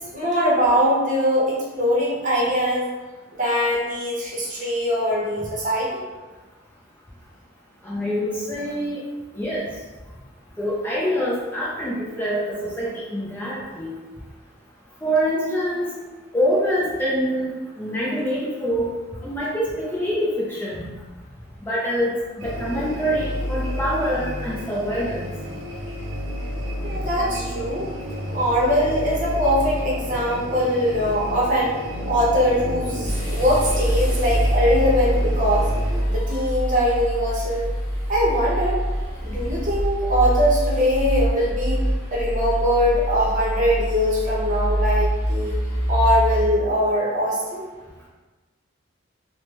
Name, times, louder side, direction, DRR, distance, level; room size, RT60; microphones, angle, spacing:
voice 1, 0.1-2.8 3.4-5.9 26.8-27.9 28.3-31.8 32.1-35.7 36.1-37.7 38.1-38.8 39.2-41.8 42.1-45.6 45.9-47.6, equal, 40° right, -6 dB, 0.8 m, -22 dB
voice 2, 7.8-9.0 9.4-9.7 10.6-13.9 15.0-15.9 16.3-18.9 19.2-20.9 21.7-25.3, equal, 10° left, -6 dB, 0.4 m, -25 dB
sound 1, 22.4-36.0, equal, 65° right, 0.5 m, -31 dB
sound 2, 33.0-46.4, equal, 40° left, 1.3 m, -24 dB
3.2 x 2.1 x 2.9 m, 1.2 s
head